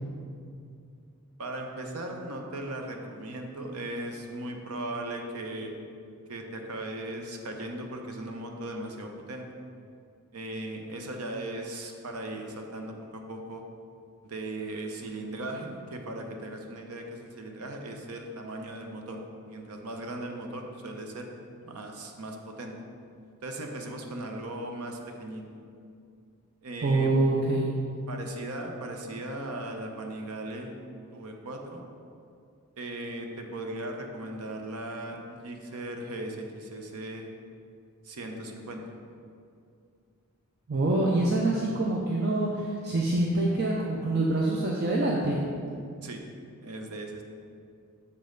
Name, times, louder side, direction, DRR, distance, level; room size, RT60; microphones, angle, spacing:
voice 1, 1.4-5.7 6.3-9.5 10.3-13.6 14.2-19.2 19.4-21.3 21.6-22.7 23.4-25.4 26.6-27.1 28.1-30.7 31.1-31.8 32.8-37.3 38.0-38.8 46.0-46.2 46.6-47.2, right 1 dB, 80° right, 3 dB, 0.8 m, -38 dB
voice 2, 26.8-27.7 40.7-45.4, right 2 dB, 45° right, -3 dB, 0.6 m, -25 dB
6.8 x 5.3 x 3.8 m, 2.4 s
head